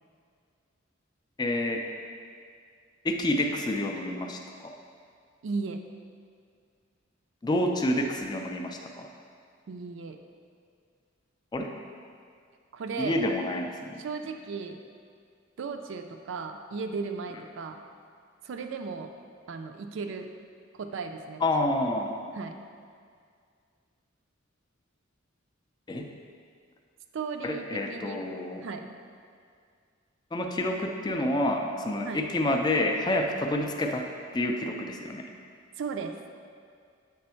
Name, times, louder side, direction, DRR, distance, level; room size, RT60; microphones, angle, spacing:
voice 1, 1.4-1.9 3.0-4.7 7.4-9.1 11.5-11.7 13.0-14.0 21.4-22.1 25.9-26.1 27.4-28.7 30.3-34.1 34.3-35.2, left 1 dB, 20° left, 2 dB, 0.4 m, -28 dB
voice 2, 5.4-5.8 9.7-10.2 12.7-13.2 14.0-14.8 15.6-17.8 18.4-19.1 19.5-20.3 20.8-21.4 22.4-22.5 27.1-28.2 28.6-29.0 32.1-32.2 35.8-36.2, right 4 dB, 65° right, 6 dB, 0.4 m, -35 dB
7.8 x 3.4 x 4.3 m, 2.2 s
head